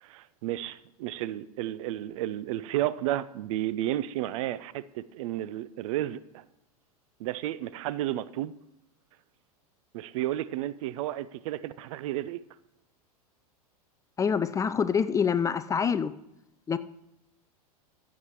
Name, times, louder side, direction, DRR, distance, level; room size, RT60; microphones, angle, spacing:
voice 1, 0.0-6.4 7.2-8.5 9.9-12.4, right 13 dB, 60° right, 0.5 m, -32 dB
voice 2, 14.2-16.1 16.7-16.8, left 6 dB, 15° left, 0.4 m, -26 dB
15.0 x 7.3 x 3.1 m
hypercardioid pair, 95°, 19 cm